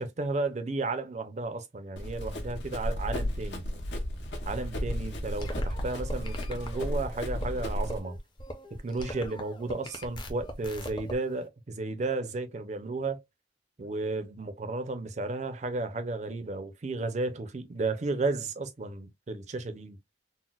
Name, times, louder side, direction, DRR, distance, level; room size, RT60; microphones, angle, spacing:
voice 1, 0.0-3.7 4.4-8.2 8.7-13.2 13.8-20.0, right 3 dB, 40° right, 0.5 m, -33 dB
Run, 2.0-8.0, equal, 70° left, 0.9 m, -33 dB
sound 1, 5.4-11.2, equal, 25° left, 0.6 m, -42 dB
3.9 x 2.1 x 2.2 m
head